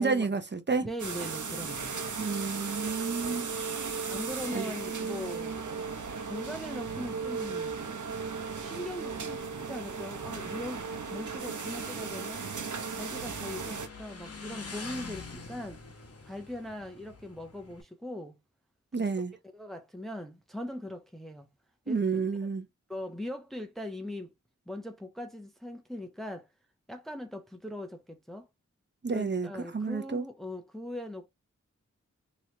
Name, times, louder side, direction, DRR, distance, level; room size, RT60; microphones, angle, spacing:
voice 1, 0.0-0.9 2.2-3.5 4.5-4.7 18.9-19.3 21.9-22.7 29.0-30.2, right 4 dB, 35° right, 0.8 m, -30 dB
voice 2, 0.8-2.0 4.1-5.8 6.2-7.8 8.6-12.4 12.9-15.8 16.2-18.4 19.5-21.5 21.9-22.0 22.4-22.5 22.9-24.3 24.7-26.5 26.9-28.5 29.1-31.3, left 1 dB, ahead, 0.7 m, -40 dB
sound 1, 1.0-13.9, right 5 dB, 70° right, 0.9 m, -36 dB
Motorcycle, 4.9-17.8, left 4 dB, 50° left, 1.0 m, -49 dB
3.1 x 2.9 x 2.7 m
wide cardioid pair, 50°, 31 cm